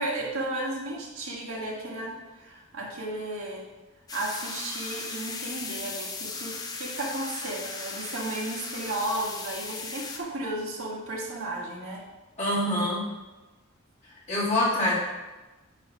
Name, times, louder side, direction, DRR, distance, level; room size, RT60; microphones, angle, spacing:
voice 1, 0.0-3.6 4.1-12.0, right 1 dB, 85° right, -3 dB, 1.8 m, -34 dB
sound 1, 4.1-10.2, left 4 dB, 20° left, 0.5 m, -37 dB
voice 2, 12.4-13.0 14.3-15.0, left 1 dB, 35° left, -7 dB, 2.3 m, -25 dB
9.2 x 3.3 x 5.7 m, 1.1 s
head